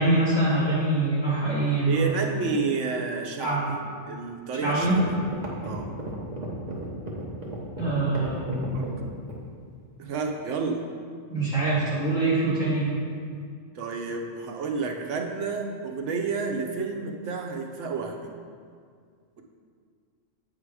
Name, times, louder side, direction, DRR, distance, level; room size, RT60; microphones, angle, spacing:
voice 1, 0.0-2.1 3.4-3.8 4.6-4.9 7.8-8.9 11.3-12.9, right 2 dB, 35° left, -7 dB, 2.0 m, -24 dB
voice 2, 1.9-3.8 4.1-5.2 5.6-5.9 8.7-8.9 10.0-10.8 13.7-18.3, right 4 dB, 75° right, 3 dB, 1.0 m, -30 dB
sound 1, 4.4-4.5 4.8-9.5, right 1 dB, 35° right, 1.1 m, -35 dB
8.2 x 3.7 x 4.8 m, 2.1 s
omnidirectional pair, 1.3 m